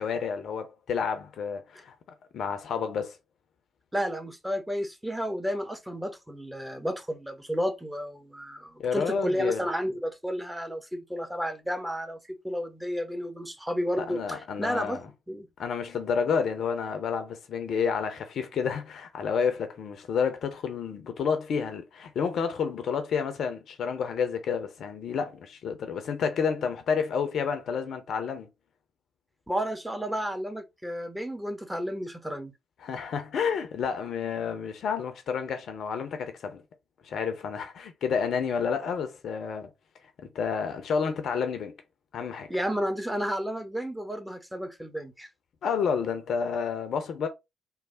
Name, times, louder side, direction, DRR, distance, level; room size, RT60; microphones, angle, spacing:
voice 1, 0.0-1.9 2.3-3.2 8.8-9.6 14.0-15.0 15.6-28.5 32.8-36.6 37.0-39.7 40.3-41.7 42.1-42.5 45.6-47.3, left 6 dB, 55° left, 0.6 m, -30 dB
voice 2, 3.9-12.2 12.4-15.0 15.3-15.5 29.5-32.5 42.5-45.3, equal, 5° right, 0.9 m, -32 dB
3.2 x 2.2 x 3.7 m
figure-of-eight pair, 40°, 0 cm